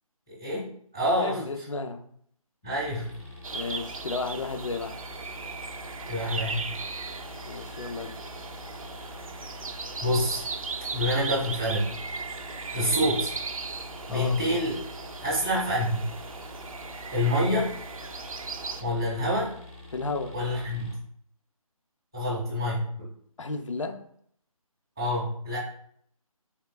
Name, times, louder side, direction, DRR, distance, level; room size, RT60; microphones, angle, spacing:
voice 1, 0.3-0.7 0.9-1.6 2.6-3.1 6.1-6.7 10.0-10.4 10.9-11.9 12.7-13.3 14.1-14.8 15.2-16.0 17.1-17.7 18.8-19.5 20.3-20.9 22.1-23.1 25.0-25.6, equal, 5° right, -11 dB, 0.4 m, -27 dB
voice 2, 1.2-2.0 3.5-5.0 7.4-8.2 12.8-13.0 14.1-14.3 17.3-17.7 19.9-20.3 23.4-24.0, left 3 dB, 55° left, 8 dB, 0.5 m, -33 dB
sound 1, 2.6-20.9, left 3 dB, 10° left, 0.7 m, -46 dB
sound 2, 3.4-18.8, right 4 dB, 65° right, 0.5 m, -37 dB
4.0 x 3.4 x 2.3 m, 0.65 s
figure-of-eight pair, 160°, 19 cm